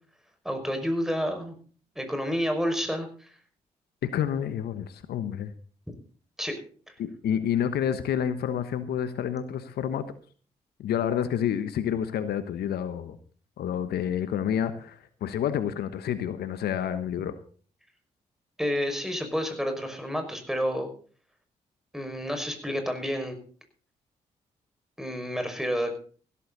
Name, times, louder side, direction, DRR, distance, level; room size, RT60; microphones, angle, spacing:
voice 1, 0.4-1.6 2.0-3.3 6.4-6.6 6.9-7.0 18.6-20.9 21.9-23.4 25.0-25.9, equal, 5° right, 6 dB, 5.8 m, -29 dB
voice 2, 4.0-5.5 7.0-10.0 10.8-13.2 13.6-17.3, left 9 dB, 75° left, 12 dB, 1.2 m, -29 dB
16.0 x 13.5 x 4.1 m, 0.41 s
hypercardioid pair, 40°, 17 cm